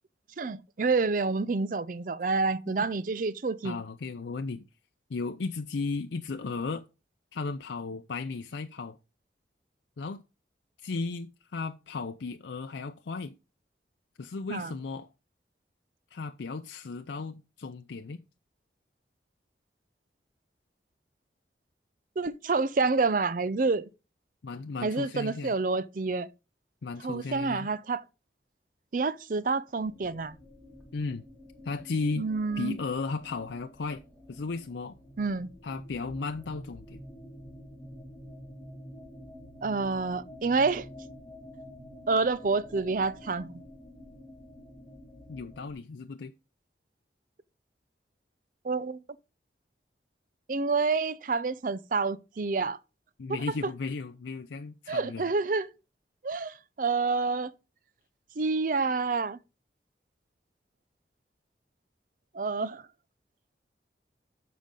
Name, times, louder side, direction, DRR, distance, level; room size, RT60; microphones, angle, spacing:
voice 1, 0.4-3.8 14.5-14.7 22.2-23.9 24.8-26.3 27.0-28.0 28.9-30.4 32.2-32.8 35.2-35.5 39.6-40.9 42.1-43.6 48.6-49.0 50.5-52.8 54.9-55.7 56.2-57.5 58.4-59.4 62.3-62.8, right 4 dB, 50° right, 0.5 m, -28 dB
voice 2, 3.6-4.6 5.1-6.8 7.3-9.0 10.0-10.2 10.8-13.3 14.2-15.1 16.1-18.2 24.4-25.5 26.8-27.7 30.9-31.2 31.6-32.3 32.6-34.0 34.3-34.9 35.6-37.0 45.3-46.3 53.2-55.3, left 4 dB, 85° left, 0.5 m, -35 dB
sound 1, 29.8-45.7, left 1 dB, 5° left, 2.0 m, -48 dB
12.5 x 5.2 x 3.8 m
head